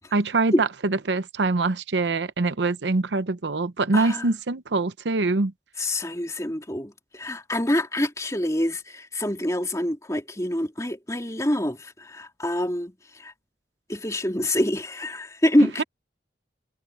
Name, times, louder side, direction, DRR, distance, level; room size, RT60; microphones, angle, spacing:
voice 1, 0.1-5.5, right 3 dB, 80° right, 0.8 m, -24 dB
voice 2, 3.9-4.3 5.8-13.3 13.9-15.8, left 1 dB, 20° left, 2.8 m, -26 dB
head